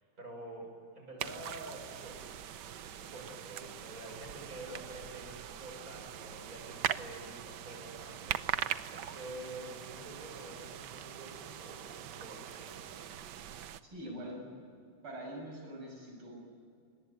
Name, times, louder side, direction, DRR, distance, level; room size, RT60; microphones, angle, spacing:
voice 1, 0.0-2.3 2.6-8.4 8.9-13.0 14.0-14.3, right 1 dB, 40° right, 0 dB, 7.1 m, -48 dB
sound 1, 1.2-13.8, right 10 dB, 65° right, 1.3 m, -41 dB
voice 2, 13.8-14.5 15.0-16.4, equal, 85° right, 1 dB, 7.9 m, -44 dB
22.5 x 19.5 x 9.6 m, 2.4 s
omnidirectional pair, 2.3 m